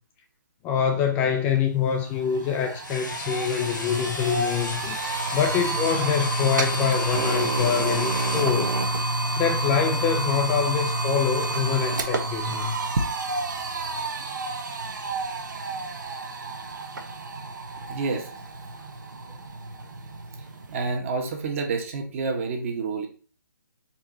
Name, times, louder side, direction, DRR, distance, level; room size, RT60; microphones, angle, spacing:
voice 1, 0.6-5.0 5.3-8.8 9.4-12.9, left 7 dB, 15° left, 0.3 m, -25 dB
sound 1, 1.5-1.6 2.0-21.0, right 2 dB, 65° right, 0.9 m, -29 dB
sound 2, 2.8-8.5, left 4 dB, 70° left, 0.7 m, -36 dB
voice 2, 17.9-18.3 20.7-23.1, right 4 dB, 40° right, 1.1 m, -28 dB
4.3 x 2.9 x 3.8 m
figure-of-eight pair, 140°, 11 cm